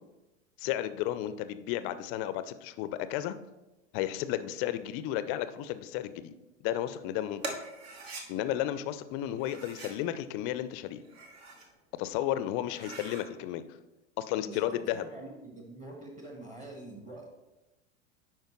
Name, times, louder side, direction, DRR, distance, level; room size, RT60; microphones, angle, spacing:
voice 1, 0.6-3.4 3.9-6.3 6.6-7.4 8.3-11.0 12.0-13.6 14.2-15.1, left 12 dB, 35° left, 13 dB, 0.5 m, -33 dB
sound 1, 7.4-8.3 9.4-10.0 10.9-11.7 12.1-12.2 12.6-13.3, right 2 dB, 55° right, 1.3 m, -42 dB
voice 2, 14.4-17.3, right 2 dB, 20° right, 2 dB, 1.4 m, -46 dB
10.5 x 4.5 x 3.0 m, 1.0 s
figure-of-eight pair, 80°, 36 cm